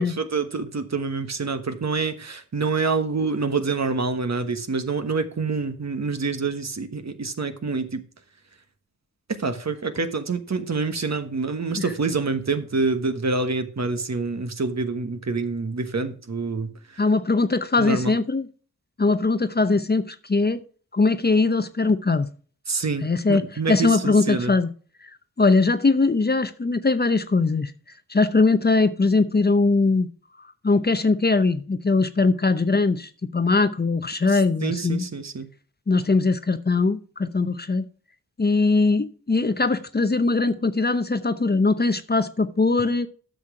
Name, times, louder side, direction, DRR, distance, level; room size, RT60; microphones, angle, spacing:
voice 1, 0.0-8.0 9.3-17.0 17.8-18.2 22.7-24.5 34.3-35.5, right 4 dB, 50° right, 1.3 m, -27 dB
voice 2, 17.0-18.5 19.0-20.6 20.9-22.3 23.0-24.7 25.4-27.7 28.1-30.1 30.6-35.0 35.9-37.8 38.4-43.1, left 3 dB, 30° left, 0.8 m, -21 dB
9.7 x 6.2 x 4.9 m
cardioid pair, 40°, 34 cm